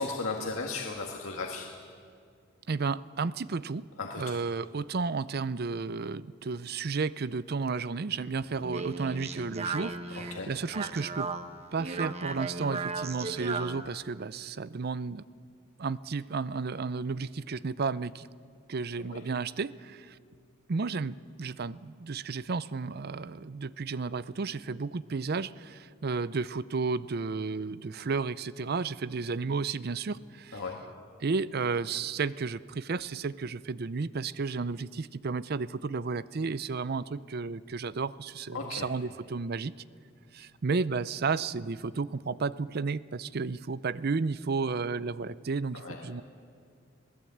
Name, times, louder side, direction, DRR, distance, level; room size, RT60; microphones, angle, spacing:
voice 1, 0.0-1.7 4.0-4.2 10.3-10.5 19.1-19.2 30.5-30.8 38.5-38.9 45.7-46.0, left 3 dB, 90° left, 1 dB, 1.9 m, -35 dB
voice 2, 2.7-3.8 4.2-11.3 11.7-15.2 15.8-18.3 18.7-20.2 20.7-30.6 31.2-39.7 40.3-46.2, right 4 dB, 50° right, 17 dB, 0.5 m, -32 dB
Speech, 8.4-13.9, right 4 dB, 30° right, 1.0 m, -36 dB
26.5 x 17.0 x 8.6 m, 2.2 s
head